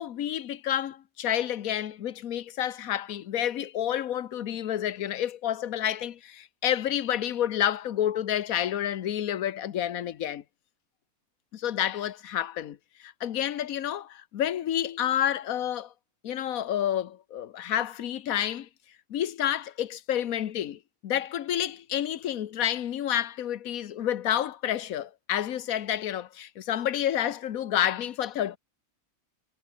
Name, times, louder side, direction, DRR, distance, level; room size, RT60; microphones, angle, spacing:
voice 1, 0.0-10.4 11.5-15.9 16.2-18.7 19.1-28.6, left 11 dB, 75° left, 1.4 m, -29 dB
omnidirectional pair, 1.5 m